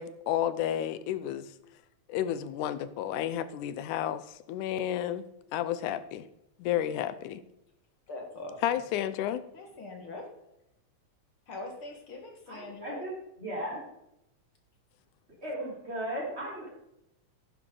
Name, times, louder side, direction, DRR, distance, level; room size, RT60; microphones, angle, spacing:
voice 1, 0.0-1.5 2.1-5.2 5.5-6.3 6.6-7.4 8.6-9.4, left 11 dB, 90° left, 14 dB, 2.2 m, -31 dB
voice 2, 8.1-8.8 9.5-10.3 11.5-13.0, left 2 dB, 50° left, 2 dB, 2.3 m, -42 dB
voice 3, 12.5-13.1 13.4-13.8 15.4-16.7, right 1 dB, 20° right, -4 dB, 4.3 m, -36 dB
11.0 x 10.5 x 3.9 m, 0.84 s
omnidirectional pair, 3.4 m